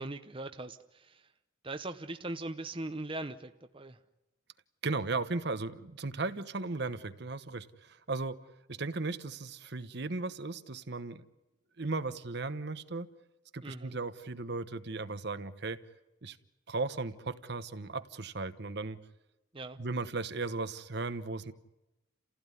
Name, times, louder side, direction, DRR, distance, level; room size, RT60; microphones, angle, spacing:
voice 1, 0.0-1.3 1.6-4.0 13.6-14.0 19.5-19.8, right 2 dB, 25° right, 8 dB, 0.8 m, -40 dB
voice 2, 4.8-8.4 8.7-11.2 11.8-13.1 13.5-15.8 16.2-16.4 16.7-19.0 19.8-21.5, right 3 dB, 55° right, 11 dB, 1.0 m, -36 dB
29.5 x 16.0 x 9.7 m, 1.0 s
head